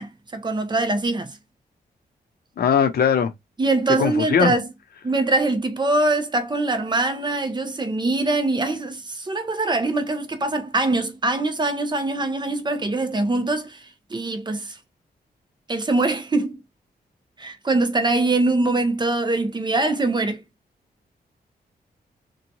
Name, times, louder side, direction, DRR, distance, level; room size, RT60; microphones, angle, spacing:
voice 1, 0.0-1.4 3.6-4.7 5.0-13.8 14.1-14.8 15.7-16.6 17.4-20.4, right 2 dB, 25° right, 0.6 m, -23 dB
voice 2, 2.6-3.3 4.0-4.5, left 7 dB, 70° left, 0.6 m, -19 dB
2.9 x 2.2 x 2.6 m
cardioid pair, 85°, 17 cm